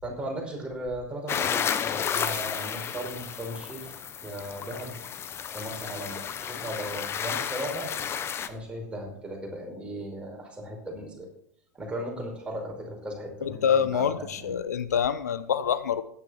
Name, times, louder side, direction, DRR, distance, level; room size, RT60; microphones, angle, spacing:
voice 1, 0.0-3.9 4.2-5.0 5.5-7.9 8.5-11.3 11.7-14.5, right 1 dB, 10° right, 5.3 m, -37 dB
sound 1, 1.3-8.5, left 8 dB, 30° left, 1.1 m, -32 dB
voice 2, 13.4-16.0, left 8 dB, 70° left, 0.9 m, -26 dB
15.0 x 10.5 x 4.4 m
figure-of-eight pair, 85°, 9 cm